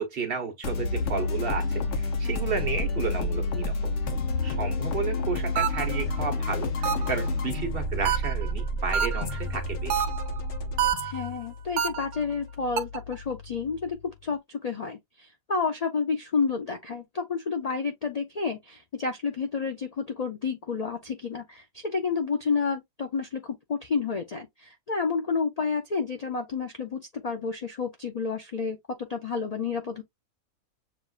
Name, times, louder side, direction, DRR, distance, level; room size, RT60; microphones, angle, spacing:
voice 1, 0.0-3.7 4.4-10.0, right 5 dB, 45° right, 1.2 m, -32 dB
sound 1, 0.6-14.0, left 2 dB, 60° left, 1.1 m, -30 dB
sound 2, 5.6-6.0 6.8-7.3 8.1-8.5 8.9-9.4 9.9-10.4 10.8-11.3 11.8-12.2 12.8-13.1, right 8 dB, 65° right, 1.0 m, -28 dB
voice 2, 11.0-14.0 14.2-28.8 29.1-30.0, left 5 dB, 75° left, 0.3 m, -30 dB
6.9 x 2.5 x 2.3 m
omnidirectional pair, 1.5 m